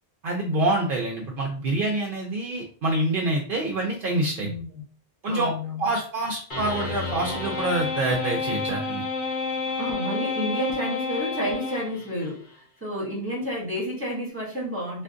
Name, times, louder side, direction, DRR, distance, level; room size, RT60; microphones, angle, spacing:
voice 1, 0.2-4.5 5.2-5.5 5.8-9.0, right 2 dB, 65° right, 0 dB, 0.8 m, -26 dB
voice 2, 4.4-4.8 5.2-5.9 9.8-15.0, equal, 15° right, -5 dB, 1.6 m, -30 dB
sound 1, 6.5-12.3, left 3 dB, 55° left, 1.0 m, -30 dB
3.5 x 2.5 x 2.4 m, 0.42 s
omnidirectional pair, 1.0 m